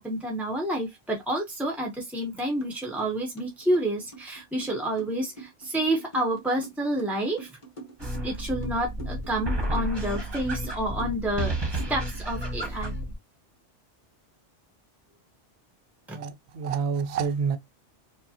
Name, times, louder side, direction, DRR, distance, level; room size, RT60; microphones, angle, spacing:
voice 1, 0.0-7.5 8.0-12.9 16.1-16.2, right 1 dB, ahead, 0.4 m, -29 dB
sound 1, 2.6-2.7 3.0-12.2, right 3 dB, 30° left, 1.2 m, -44 dB
sound 2, 8.0-13.2, right 1 dB, 25° right, 0.9 m, -31 dB
voice 2, 16.1-17.6, right 6 dB, 70° right, 0.8 m, -28 dB
4.7 x 2.1 x 2.7 m
omnidirectional pair, 1.2 m